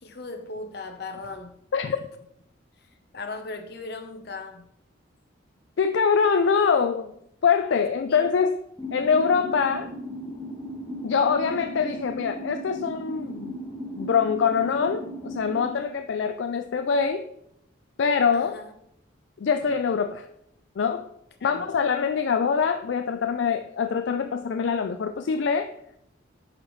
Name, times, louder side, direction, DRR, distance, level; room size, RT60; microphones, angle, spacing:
voice 1, 0.0-1.6 3.1-4.7 8.1-8.3 18.3-18.7 21.4-21.6, left 3 dB, 55° left, 5 dB, 0.9 m, -38 dB
voice 2, 1.7-2.0 5.8-7.1 7.4-8.6 8.9-9.9 11.0-13.5 14.0-17.2 18.0-18.6 19.4-20.3 20.8-21.1 21.4-25.7, left 6 dB, 70° left, 8 dB, 0.4 m, -24 dB
sound 1, 8.8-15.7, equal, 5° left, 1.6 m, -36 dB
9.1 x 5.4 x 3.2 m, 0.75 s
head